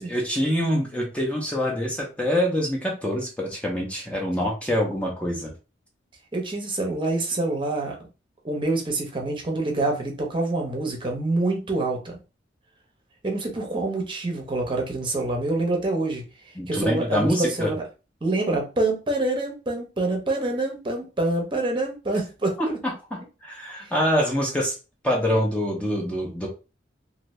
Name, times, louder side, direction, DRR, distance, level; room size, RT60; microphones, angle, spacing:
voice 1, 0.0-5.5 16.6-17.7 22.6-22.7 23.1-24.7 25.0-26.5, equal, 5° left, -2 dB, 0.6 m, -25 dB
voice 2, 6.3-8.0 8.4-12.2 13.2-17.8 18.2-22.8 23.8-23.9, right 2 dB, 25° right, 1 dB, 0.7 m, -26 dB
2.6 x 2.6 x 3.1 m, 0.31 s
head